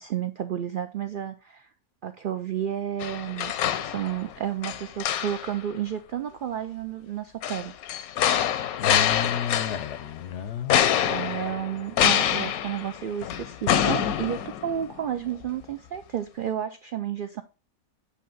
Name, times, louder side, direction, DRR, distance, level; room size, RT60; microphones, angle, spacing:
voice 1, 0.0-1.7 2.0-3.5 3.8-7.7 11.0-17.4, right 10 dB, 80° right, 0.4 m, -31 dB
sound 1, 3.0-4.3 4.6-5.6 7.4-10.1 10.7-15.0 15.4-15.5, left 10 dB, 85° left, 1.1 m, -26 dB
voice 2, 8.7-10.8, left 8 dB, 65° left, 0.8 m, -32 dB
8.3 x 2.9 x 5.2 m
omnidirectional pair, 1.5 m